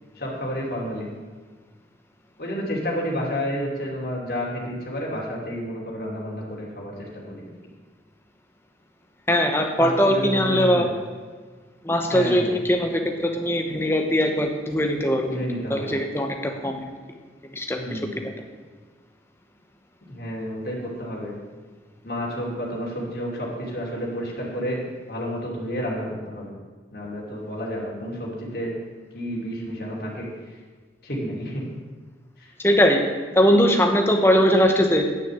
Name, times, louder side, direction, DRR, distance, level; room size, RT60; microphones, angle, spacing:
voice 1, 0.2-1.1 2.4-7.5 9.8-10.9 12.1-12.5 15.2-16.0 17.8-18.2 20.1-21.3 22.0-24.8 25.1-26.5 26.9-28.7 29.1-30.3 31.0-31.6 32.4-32.5, equal, 55° left, -4 dB, 2.8 m, -30 dB
voice 2, 9.3-10.9 11.8-16.9 17.5-18.0 32.6-33.1 33.3-35.1, equal, 15° left, 4 dB, 1.0 m, -21 dB
9.7 x 6.7 x 7.6 m, 1.5 s
head